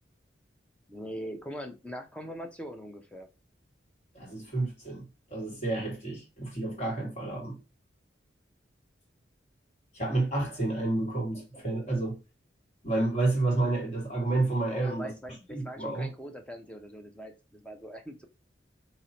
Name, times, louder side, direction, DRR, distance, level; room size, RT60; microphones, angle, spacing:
voice 1, 0.9-3.3 14.7-18.3, equal, 5° left, 0.6 m, -41 dB
voice 2, 4.1-5.0 5.3-7.6 9.9-12.2 12.8-15.1 15.5-16.1, right 2 dB, 35° left, 1.9 m, -30 dB
4.7 x 2.9 x 2.9 m
head